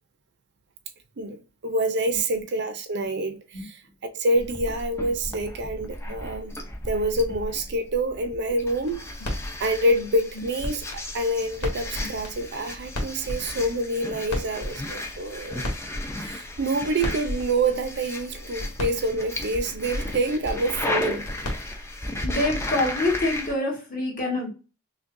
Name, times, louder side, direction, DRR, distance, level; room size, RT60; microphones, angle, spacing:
voice 1, 1.2-3.8 4.1-6.6 6.9-9.0 9.6-15.7 16.2-21.3, right 1 dB, 50° right, 0.5 m, -27 dB
sound 1, 4.4-23.5, left 1 dB, 10° left, 0.5 m, -35 dB
sound 2, 8.8-22.2, left 1 dB, 80° left, 1.4 m, -36 dB
voice 2, 22.2-24.5, left 2 dB, 40° left, 1.5 m, -26 dB
6.0 x 2.2 x 2.6 m
head